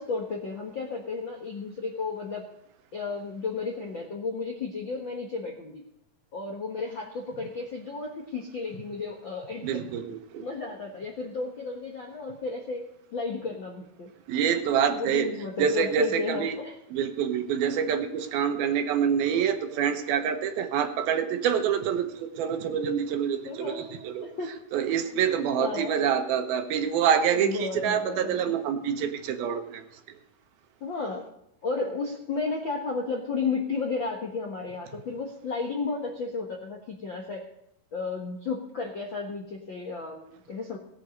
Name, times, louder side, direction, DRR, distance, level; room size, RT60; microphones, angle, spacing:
voice 1, 0.0-2.4 2.9-5.8 6.3-9.8 10.4-12.8 13.1-14.1 14.9-16.7 23.4-24.6 25.6-25.9 27.3-28.6 30.8-31.2 31.6-37.5 37.9-40.8, left 4 dB, 60° left, 0 dB, 1.2 m, -33 dB
voice 2, 9.6-10.5 14.3-15.3 15.6-16.6 16.9-24.3 24.7-30.2, right 8 dB, 80° right, 7 dB, 2.9 m, -26 dB
17.5 x 8.4 x 5.2 m, 0.79 s
omnidirectional pair, 4.4 m